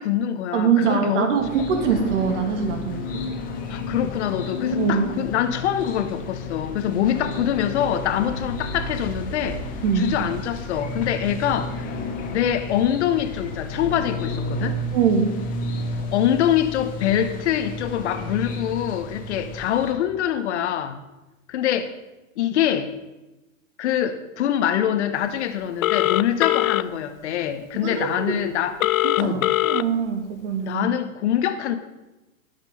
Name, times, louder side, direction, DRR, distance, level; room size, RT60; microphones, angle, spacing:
voice 1, 0.0-1.3 3.7-9.6 9.9-11.9 12.3-14.8 16.1-21.0 21.5-21.9 22.4-22.9 23.8-28.8 29.2-29.5 30.6-31.8, left 10 dB, 55° left, 10 dB, 1.3 m, -24 dB
voice 2, 0.5-3.2 4.7-5.1 9.8-10.1 14.9-15.4 27.8-28.3 29.0-30.9, right 6 dB, 60° right, 5 dB, 2.8 m, -23 dB
sound 1, 1.4-19.9, left 2 dB, 20° left, 1.8 m, -32 dB
Telephone, 25.8-26.8 28.8-29.8, left 15 dB, 70° left, 0.6 m, -21 dB
21.0 x 7.3 x 5.5 m, 1.0 s
hypercardioid pair, 155°, 42 cm